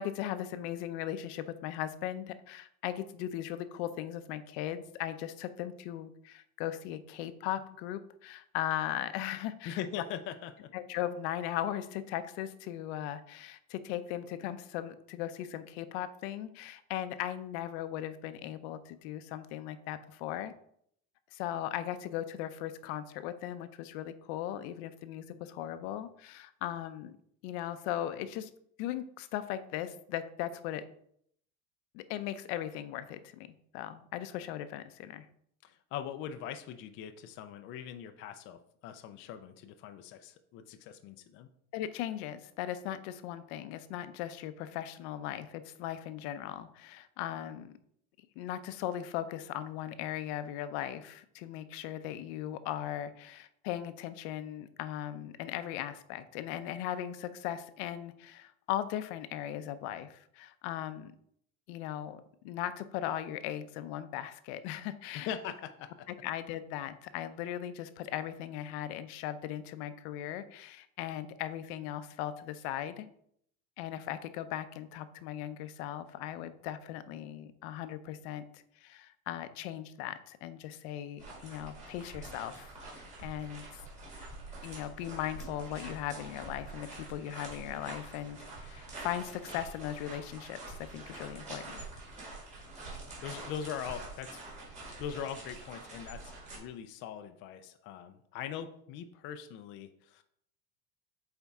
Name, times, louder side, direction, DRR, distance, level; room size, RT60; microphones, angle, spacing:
voice 1, 0.0-9.8 10.7-20.5 21.3-27.2 27.4-28.5 28.8-30.8 31.9-33.5 33.7-35.3 41.7-47.7 48.4-61.1 61.7-65.3 66.1-73.1 73.8-83.8 84.6-91.8, left 11 dB, 70° left, 12 dB, 0.7 m, -38 dB
voice 2, 9.7-10.7 35.6-41.5 65.3-66.1 93.2-94.4 95.0-100.2, left 9 dB, 35° left, 8 dB, 0.4 m, -41 dB
sound 1, 81.2-96.6, right 2 dB, 20° right, 2.3 m, -46 dB
8.1 x 4.4 x 3.6 m, 0.69 s
cardioid pair, 175°, 34 cm